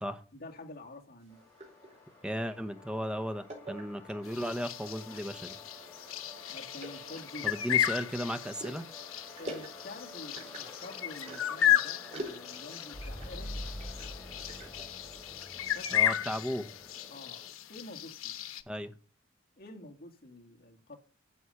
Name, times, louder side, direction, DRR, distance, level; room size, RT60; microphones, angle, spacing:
voice 1, 0.3-1.4 6.5-7.6 9.4-13.7 15.7-16.1 17.1-17.4 17.7-18.3 19.6-21.0, left 2 dB, 50° left, 2.6 m, -48 dB
sound 1, 1.2-2.6 3.5-4.4 5.0-5.5 6.0-6.1 6.8-7.9 8.5-11.7 12.1-13.3 13.7-14.9, right 1 dB, 35° right, 4.4 m, -46 dB
sound 2, 1.3-17.5, left 1 dB, 10° left, 3.9 m, -48 dB
voice 2, 2.2-5.6 7.4-8.8 15.9-16.7 18.7-18.9, equal, 5° right, 1.0 m, -35 dB
sound 3, 4.2-18.6, left 11 dB, 90° left, 1.1 m, -34 dB
11.0 x 7.3 x 8.4 m
head